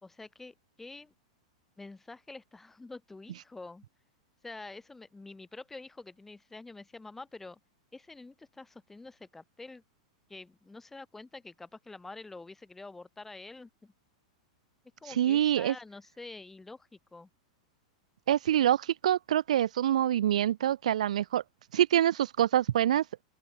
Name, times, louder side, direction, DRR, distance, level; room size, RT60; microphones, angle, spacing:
voice 1, 0.0-1.1 1.8-3.8 4.4-7.6 7.9-9.8 10.3-13.9 15.0-17.3, left 3 dB, 5° left, 3.2 m, -47 dB
voice 2, 15.2-15.7 18.3-21.4 21.7-23.0, right 11 dB, 85° right, 0.3 m, -25 dB
open air
supercardioid pair, 140°, 4 cm